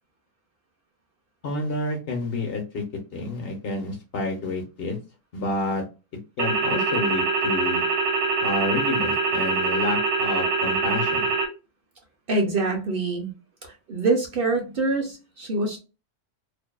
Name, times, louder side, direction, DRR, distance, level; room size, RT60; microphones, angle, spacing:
voice 1, 1.4-2.8 3.1-5.0 5.3-5.8 6.4-7.8 8.4-11.3, left 2 dB, 60° left, 0.9 m, -29 dB
sound 1, 6.4-11.5, right 4 dB, 75° right, 1.1 m, -24 dB
voice 2, 12.3-13.3 13.6-15.8, right 3 dB, 55° right, 0.7 m, -25 dB
2.5 x 2.2 x 2.2 m
omnidirectional pair, 1.3 m